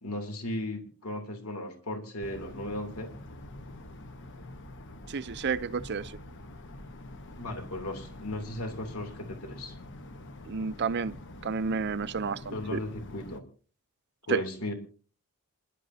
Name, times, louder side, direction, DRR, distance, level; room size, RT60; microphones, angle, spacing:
voice 1, 0.0-3.1 7.4-9.7 12.5-13.4 14.3-14.7, left 1 dB, 75° left, 3.0 m, -36 dB
sound 1, 2.2-13.4, left 1 dB, 55° left, 1.1 m, -46 dB
voice 2, 5.1-6.1 10.5-11.1 11.4-12.8 14.3-14.4, right 5 dB, 50° right, 0.6 m, -30 dB
27.5 x 11.5 x 2.8 m
head